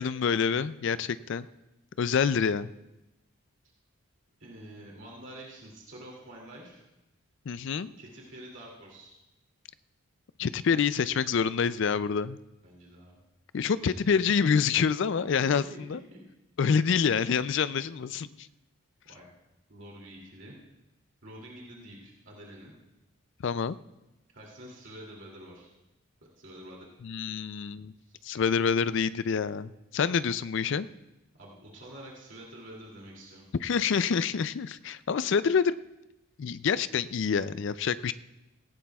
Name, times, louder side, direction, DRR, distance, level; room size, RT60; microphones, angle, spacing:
voice 1, 0.0-1.5 2.0-2.7 7.5-7.9 10.4-12.4 13.5-16.0 16.6-18.5 23.4-23.8 27.0-27.9 28.2-30.9 33.6-35.8 36.4-38.1, left 6 dB, 55° left, 15 dB, 0.4 m, -27 dB
voice 2, 4.4-6.8 8.0-9.1 12.6-13.2 13.7-14.0 15.3-16.2 19.1-19.3 19.7-20.6 21.2-22.7 24.3-25.7 26.2-26.9 28.1-28.2 31.4-33.4, right 1 dB, 55° right, -3 dB, 2.7 m, -47 dB
17.5 x 16.0 x 2.3 m, 0.96 s
head